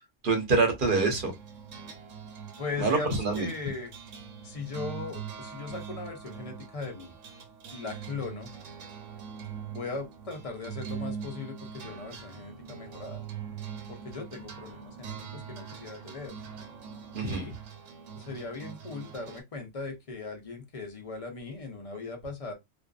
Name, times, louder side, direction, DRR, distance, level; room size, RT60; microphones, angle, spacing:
voice 1, 0.2-1.3 2.8-3.5 17.1-17.4, right 3 dB, 50° right, 0.9 m, -25 dB
sound 1, 0.8-19.4, right 7 dB, 80° right, 1.0 m, -43 dB
voice 2, 2.6-3.9 4.4-7.2 7.7-8.5 9.7-13.2 13.9-16.4 17.2-17.5 18.2-22.5, left 4 dB, 40° left, 0.6 m, -39 dB
2.5 x 2.4 x 2.3 m
omnidirectional pair, 1.3 m